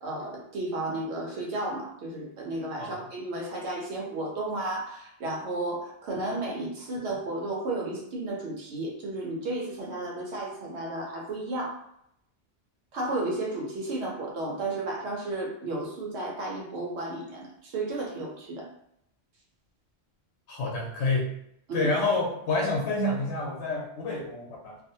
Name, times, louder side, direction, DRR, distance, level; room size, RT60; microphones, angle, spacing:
voice 1, 0.0-11.8 12.9-18.7 21.7-21.9, right 2 dB, 80° right, -1 dB, 1.0 m, -33 dB
voice 2, 20.5-21.3 21.7-24.8, left 2 dB, 85° left, 0 dB, 0.9 m, -28 dB
2.5 x 2.0 x 2.6 m, 0.76 s
omnidirectional pair, 1.1 m